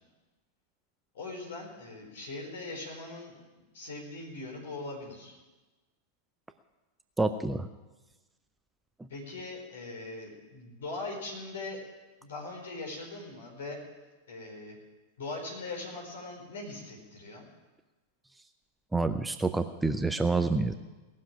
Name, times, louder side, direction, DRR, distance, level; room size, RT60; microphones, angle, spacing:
voice 1, 1.1-3.3 3.7-5.3 9.1-11.8 12.2-13.8 14.3-14.7 15.2-17.5, left 2 dB, 60° left, 0 dB, 4.5 m, -40 dB
voice 2, 7.2-7.7 18.9-20.7, right 3 dB, 5° right, 9 dB, 0.6 m, -28 dB
18.5 x 7.4 x 8.8 m, 1.2 s
figure-of-eight pair, 90°, 0 cm